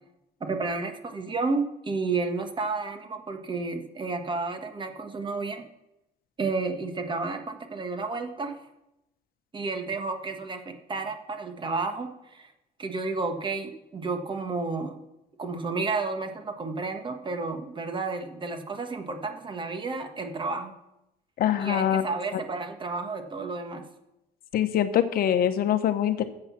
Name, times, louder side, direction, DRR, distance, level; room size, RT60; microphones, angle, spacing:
voice 1, 0.4-5.6 6.4-8.6 9.5-12.5 12.8-15.0 15.4-20.7 21.6-23.8, right 3 dB, 30° right, 6 dB, 1.4 m, -31 dB
voice 2, 21.4-22.0 22.3-22.4 24.5-26.2, left 10 dB, 60° left, 9 dB, 1.0 m, -24 dB
13.5 x 7.9 x 5.9 m, 0.89 s
cardioid pair, 110°, 17 cm